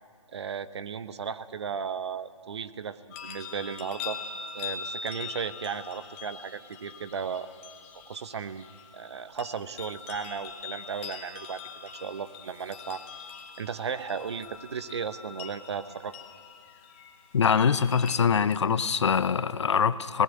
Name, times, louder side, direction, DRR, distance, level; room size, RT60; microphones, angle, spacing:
voice 1, 0.3-4.2 4.5-7.5 8.1-8.6 8.9-13.0 13.6-16.1, right 6 dB, 50° right, 13 dB, 0.9 m, -35 dB
sound 1, 3.1-18.2, left 6 dB, 25° left, 1.6 m, -42 dB
voice 2, 17.3-20.2, left 6 dB, 55° left, 15 dB, 0.8 m, -23 dB
25.0 x 18.5 x 8.1 m, 2.1 s
figure-of-eight pair, 150°, 17 cm